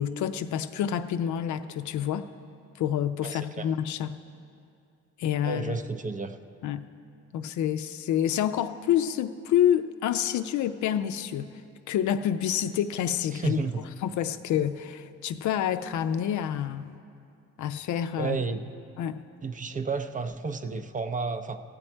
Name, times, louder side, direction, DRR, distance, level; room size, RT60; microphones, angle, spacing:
voice 1, 0.0-2.3 2.8-4.2 5.2-5.8 6.6-6.9 7.3-11.5 11.9-13.6 14.0-16.9 17.6-18.4 19.0-19.2, left 10 dB, 70° left, 10 dB, 0.5 m, -28 dB
voice 2, 3.2-3.7 5.4-6.4 13.3-13.8 18.2-18.6 19.4-21.6, right 4 dB, 25° right, 8 dB, 0.5 m, -31 dB
15.5 x 8.6 x 4.4 m, 2.5 s
cardioid pair, 90°, 30 cm